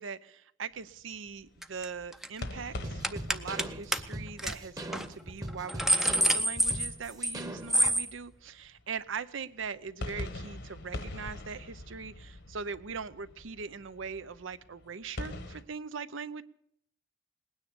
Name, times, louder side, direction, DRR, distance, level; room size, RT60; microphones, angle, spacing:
voice 1, 0.0-16.4, right 5 dB, 75° right, 14 dB, 0.7 m, -41 dB
sound 1, 0.8-9.1 9.6-15.6, left 1 dB, 60° left, 1.2 m, -44 dB
sound 2, 1.6-1.8 2.1-2.4 3.0-3.7 3.9-4.0 4.4-4.5 4.9-5.1 5.5-7.4 7.7-8.1, right 1 dB, ahead, 0.6 m, -27 dB
sound 3, 2.8-8.0, right 1 dB, 20° right, 1.1 m, -41 dB
19.5 x 9.8 x 6.9 m, 0.73 s
head